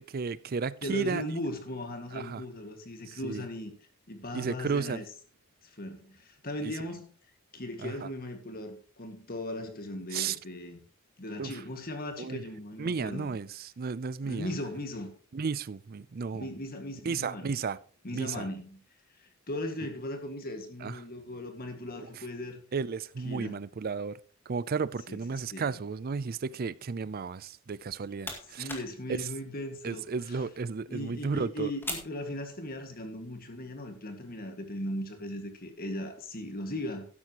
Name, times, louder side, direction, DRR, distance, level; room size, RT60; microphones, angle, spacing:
voice 1, 0.0-1.2 2.1-2.4 3.1-3.4 4.3-5.0 6.6-6.7 7.8-8.1 10.1-10.4 11.4-11.5 12.2-12.4 12.8-14.5 15.3-16.5 17.1-17.8 18.1-18.5 20.8-21.0 22.1-22.2 22.7-24.2 24.5-28.7 29.1-29.3 29.8-31.7, right 5 dB, 45° right, 0.4 m, -33 dB
voice 2, 0.8-3.7 4.1-5.0 5.6-7.1 7.5-10.8 11.2-13.4 14.2-15.1 16.3-17.5 18.0-18.8 19.5-22.6 23.2-23.6 25.1-25.2 25.5-25.8 28.5-30.4 30.9-37.1, left 1 dB, 45° left, 1.9 m, -38 dB
sound 1, 27.7-33.0, left 2 dB, 10° left, 2.0 m, -45 dB
12.5 x 10.5 x 3.0 m
head